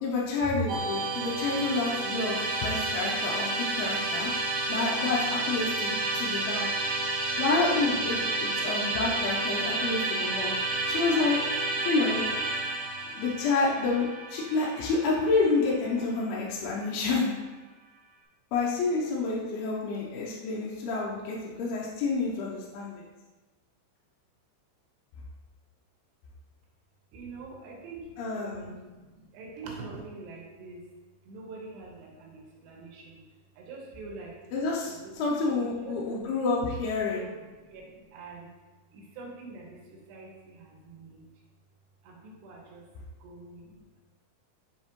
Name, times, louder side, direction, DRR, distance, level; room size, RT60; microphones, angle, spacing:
voice 1, 0.0-4.3 4.7-6.7 7.4-10.6 10.9-11.4 11.9-12.2 13.1-17.3 18.5-23.0 28.2-28.6 34.5-37.2, left 3 dB, 80° left, -4 dB, 2.6 m, -29 dB
Musical instrument, 0.7-15.9, right 2 dB, 55° right, 3.4 m, -30 dB
voice 2, 1.0-1.6 27.1-30.9 31.2-33.2 33.6-36.4 37.0-38.5 38.9-41.3 42.0-42.9 43.2-44.0, right 3 dB, 90° right, -1 dB, 3.3 m, -45 dB
7.2 x 5.3 x 3.0 m, 1.2 s
omnidirectional pair, 4.8 m